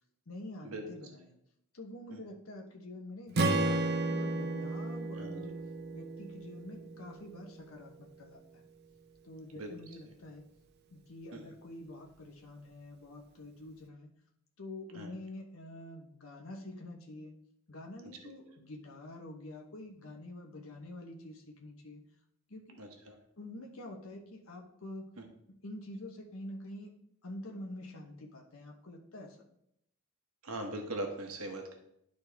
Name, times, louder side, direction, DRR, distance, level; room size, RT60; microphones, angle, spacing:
voice 1, 0.3-1.4 1.7-5.6 5.9-8.4 9.2-10.5 10.9-14.1 14.6-17.3 17.7-22.0 22.5-22.8 23.4-25.1 25.6-26.9 27.2-29.4, left 1 dB, 75° left, 1 dB, 1.1 m, -47 dB
Strum, 3.3-7.6, right 2 dB, 50° right, 0.7 m, -33 dB
voice 2, 22.8-23.2 25.2-25.3 30.4-31.7, right 1 dB, 90° right, 3 dB, 1.1 m, -40 dB
11.5 x 4.0 x 3.5 m, 0.75 s
head